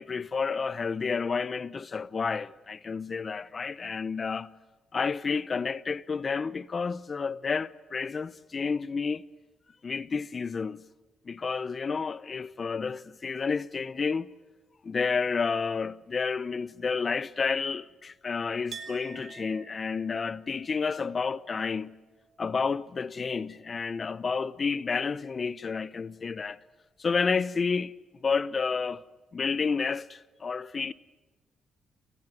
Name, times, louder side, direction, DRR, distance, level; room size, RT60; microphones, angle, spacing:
voice 1, 0.0-4.5 4.9-9.3 9.8-10.9 11.2-14.3 14.8-22.0 22.4-26.6 27.0-27.9 28.2-29.0 29.3-30.9, left 5 dB, 40° left, 0.8 m, -30 dB
Chink clink, 18.7-24.2 24.5-25.4, right 6 dB, 55° right, 4.2 m, -50 dB
29.0 x 18.5 x 9.7 m
cardioid pair, 80°, 0 cm